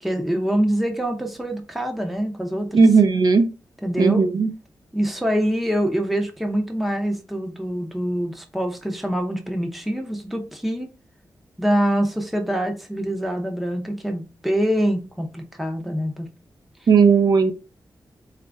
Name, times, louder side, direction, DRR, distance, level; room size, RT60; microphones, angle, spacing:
voice 1, 0.0-2.8 3.8-4.2 4.9-10.9 11.6-16.3, equal, ahead, 0.6 m, -25 dB
voice 2, 2.7-3.5 4.0-4.5 16.9-17.5, right 5 dB, 60° right, 0.6 m, -15 dB
4.3 x 2.5 x 3.3 m
wide cardioid pair, 155°, 8 cm